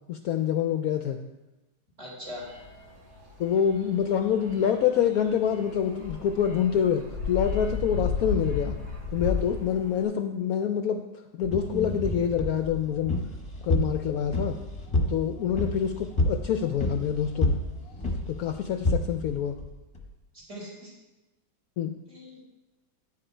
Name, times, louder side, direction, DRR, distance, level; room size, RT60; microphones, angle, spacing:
voice 1, 0.1-1.2 3.4-8.8 9.1-11.0 11.4-13.2 13.6-14.6 15.1-17.6 18.3-19.6 21.8-21.9, left 8 dB, 70° left, 6 dB, 0.9 m, -26 dB
voice 2, 2.0-2.5 20.3-20.9 22.1-22.5, left 1 dB, 40° right, -6 dB, 4.3 m, -41 dB
sound 1, 2.4-10.0, left 4 dB, 70° right, 3.4 m, -34 dB
sound 2, 11.4-20.1, left 1 dB, 20° left, 1.1 m, -30 dB
10.0 x 7.5 x 4.4 m, 1.0 s
omnidirectional pair, 1.9 m